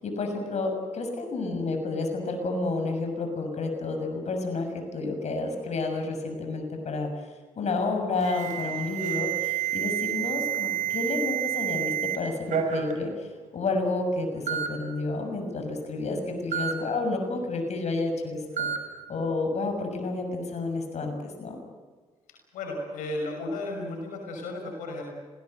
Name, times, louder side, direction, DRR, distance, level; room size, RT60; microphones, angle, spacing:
voice 1, 0.0-7.3 7.6-18.7 19.1-21.6, left 3 dB, 60° left, 5 dB, 6.4 m, -30 dB
Alarm, 8.2-12.2 12.5-12.9 13.8-13.9 14.5-14.7 16.5-16.7 18.6-18.8, right 9 dB, 70° right, 5.7 m, -29 dB
voice 2, 22.5-25.1, left 2 dB, 90° left, 2 dB, 5.6 m, -34 dB
26.5 x 19.0 x 7.9 m, 1.4 s
supercardioid pair, 60°, 13 cm